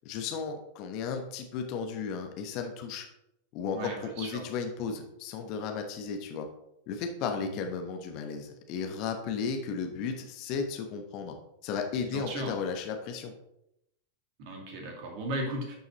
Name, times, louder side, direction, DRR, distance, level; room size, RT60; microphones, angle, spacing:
voice 1, 0.0-3.1 3.5-6.5 6.9-11.3 11.6-13.3, left 5 dB, 40° left, 4 dB, 1.1 m, -34 dB
voice 2, 3.7-4.5 7.5-7.6 12.0-12.6 14.4-15.8, right 1 dB, 45° right, 1 dB, 2.2 m, -36 dB
11.5 x 5.4 x 3.0 m, 0.82 s
figure-of-eight pair, 90°, 0 cm